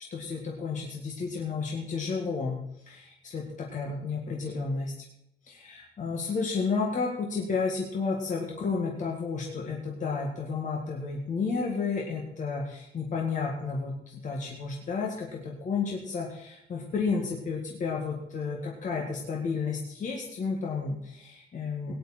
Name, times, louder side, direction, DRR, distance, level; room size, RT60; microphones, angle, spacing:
voice 1, 0.1-2.6 2.9-5.1 5.5-21.9, left 4 dB, 40° left, -1 dB, 1.9 m, -32 dB
17.5 x 10.0 x 4.3 m, 0.80 s
wide cardioid pair, 180°, 19 cm